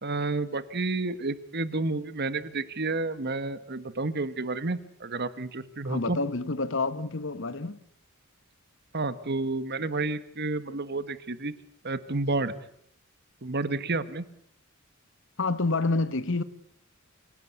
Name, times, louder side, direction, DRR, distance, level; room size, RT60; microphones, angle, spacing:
voice 1, 0.0-6.2 8.9-11.5 11.8-12.5 13.4-14.2, right 3 dB, 50° right, 1.5 m, -30 dB
voice 2, 5.8-7.8 15.4-16.4, left 3 dB, 60° left, 1.4 m, -28 dB
26.5 x 17.0 x 8.2 m
head